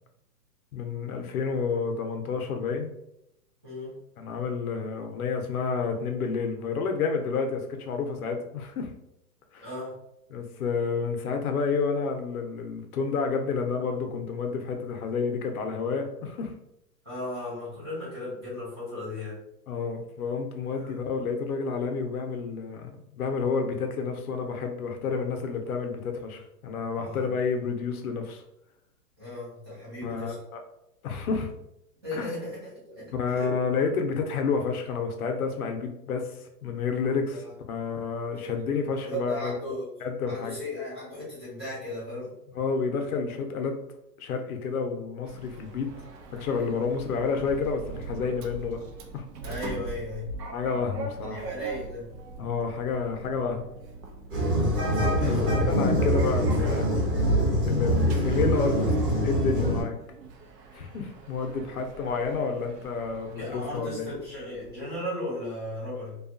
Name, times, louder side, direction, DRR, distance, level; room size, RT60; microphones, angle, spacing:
voice 1, 0.7-2.9 4.2-8.9 9.5-9.7 10.3-16.5 19.7-28.4 30.0-30.6 31.0-31.5 32.1-32.3 33.1-36.3 36.6-37.4 37.7-39.5 40.0-40.6 42.5-43.8 44.2-45.9 46.3-48.8 49.1-49.2 50.5-51.5 52.4-53.6 55.2-55.3 55.6-56.9 57.6-58.9 59.2-59.9 60.7-64.1, left 5 dB, 65° left, 4 dB, 0.7 m, -30 dB
voice 2, 3.6-3.9 9.6-10.0 17.0-19.4 20.7-21.0 26.9-27.3 29.2-30.4 32.0-33.5 37.4-37.5 38.3-38.6 39.0-39.8 40.3-42.3 49.4-50.3 51.2-52.1 55.1-55.7 63.4-66.2, left 1 dB, 15° right, -10 dB, 0.5 m, -36 dB
Sliding door, 45.3-64.9, right 4 dB, 85° right, 0.7 m, -39 dB
sound 1, 54.3-59.8, equal, 35° right, 1.1 m, -24 dB
2.6 x 2.3 x 2.5 m, 0.80 s
hypercardioid pair, 165°, 48 cm